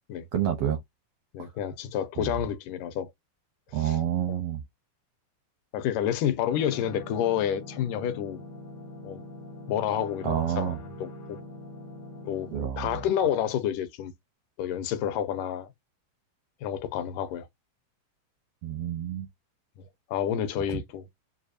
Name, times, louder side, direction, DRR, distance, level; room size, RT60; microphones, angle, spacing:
voice 1, 0.3-0.8 1.4-1.5 2.2-2.3 3.7-4.6 10.2-10.8 12.5-13.0 18.6-19.3 20.7-20.8, right 10 dB, 80° right, 1.4 m, -28 dB
voice 2, 1.3-3.1 3.7-4.0 4.3-4.4 5.7-8.4 9.0-9.2 9.7-11.4 12.2-12.5 12.8-14.1 14.6-15.7 16.6-17.5 19.8-21.1, left 10 dB, 80° left, 2.3 m, -29 dB
sound 1, 6.5-12.7, left 1 dB, 60° left, 1.0 m, -43 dB
7.1 x 2.4 x 2.6 m
omnidirectional pair, 3.8 m